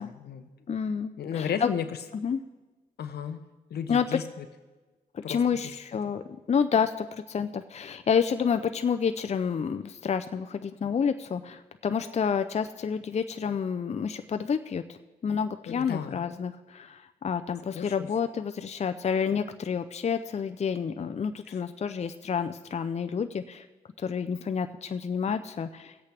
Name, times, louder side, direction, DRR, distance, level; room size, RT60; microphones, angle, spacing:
voice 1, 0.0-0.5 1.2-1.9 3.0-3.4 3.7-4.5 5.2-5.4 15.7-16.2 17.7-18.1 21.5-21.6, left 8 dB, 75° left, 10 dB, 0.8 m, -34 dB
voice 2, 0.7-1.7 2.2-2.4 3.9-4.1 5.1-23.7 24.0-26.1, left 6 dB, 40° left, 9 dB, 0.5 m, -29 dB
17.5 x 8.2 x 3.4 m, 1.2 s
cardioid pair, 65°, 17 cm